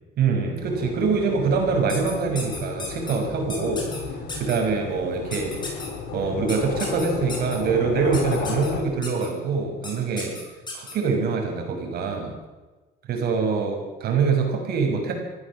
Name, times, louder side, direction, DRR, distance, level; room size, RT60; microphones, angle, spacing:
voice 1, 0.2-3.9 4.4-5.5 6.1-10.4 10.7-12.3 13.1-15.1, right 5 dB, 60° right, 3 dB, 5.7 m, -24 dB
sound 1, 0.6-8.8, left 5 dB, 80° left, 4.0 m, -33 dB
sound 2, 1.9-3.1 3.5-4.0 4.3-4.6 5.3-5.9 6.5-7.6 8.1-8.7 9.0-9.3 9.8-9.9 10.2-10.9, left 3 dB, 25° left, 7.2 m, -34 dB
23.5 x 15.5 x 7.5 m, 1.2 s
cardioid pair, 135°, 18 cm